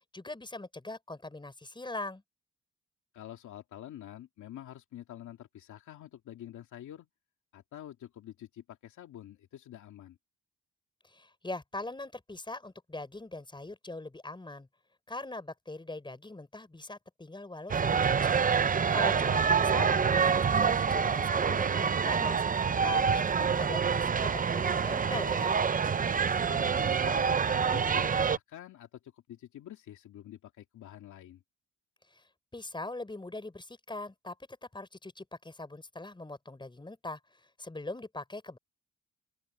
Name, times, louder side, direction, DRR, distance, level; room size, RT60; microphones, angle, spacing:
voice 1, 0.1-2.2 11.0-14.7 15.1-18.4 18.9-22.4 22.8-25.6 32.1-32.2 32.5-34.4 34.7-38.6, left 2 dB, 15° left, 5.9 m, -41 dB
voice 2, 3.1-7.1 7.5-10.2 19.0-20.1 26.5-31.4, left 12 dB, 75° left, 2.5 m, -47 dB
sound 1, 17.7-28.4, right 6 dB, 30° right, 0.7 m, -27 dB
open air
cardioid pair, 90°, 30 cm